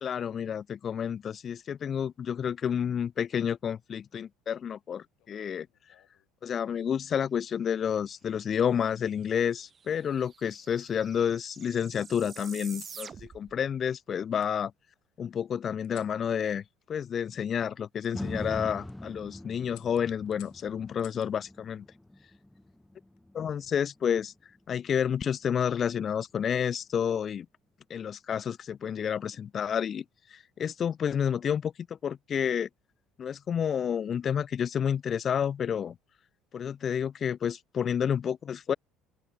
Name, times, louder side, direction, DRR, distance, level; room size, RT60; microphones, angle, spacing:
voice 1, 0.0-5.7 6.4-14.7 15.2-21.8 23.3-24.3 24.7-27.5 27.9-30.0 30.3-32.7 33.2-36.0 36.5-38.7, left 8 dB, 45° left, 0.6 m, -30 dB
sound 1, 5.2-6.3 7.3-7.7 9.0-9.8 10.4-11.3 12.5-13.0 14.4-14.5 15.8-16.2 18.0-18.1 18.7-19.0 19.7-21.3 22.8-23.2, left 19 dB, 70° left, 6.3 m, -58 dB
sound 2, 9.1-9.2 9.3-13.6, right 6 dB, 35° right, 6.8 m, -47 dB
sound 3, 18.1-26.3 26.8-26.9, left 1 dB, 5° left, 0.8 m, -43 dB
open air
hypercardioid pair, 75°, 0 cm